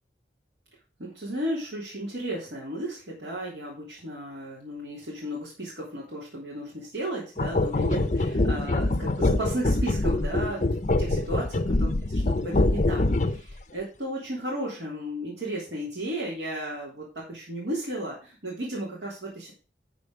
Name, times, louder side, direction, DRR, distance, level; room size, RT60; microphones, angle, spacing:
voice 1, 1.0-10.6 11.0-11.9 12.4-19.5, right 1 dB, 70° right, -6 dB, 3.4 m, -34 dB
sound 1, 7.4-13.5, left 2 dB, 40° left, 0.6 m, -24 dB
12.0 x 4.3 x 5.0 m, 0.35 s
head